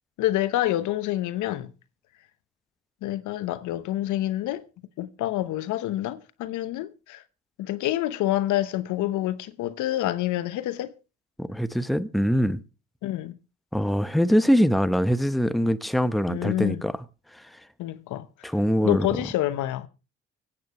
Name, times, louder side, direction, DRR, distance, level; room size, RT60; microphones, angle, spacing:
voice 1, 0.2-1.7 3.0-4.6 5.0-7.2 7.6-10.9 13.0-13.3 16.3-16.8 17.8-18.3 18.8-19.9, left 14 dB, 75° left, 0.9 m, -27 dB
voice 2, 11.4-12.6 13.7-17.0 17.3-17.4 18.4-19.1, equal, ahead, 0.9 m, -23 dB
25.0 x 8.7 x 3.1 m
supercardioid pair, 55°, 30 cm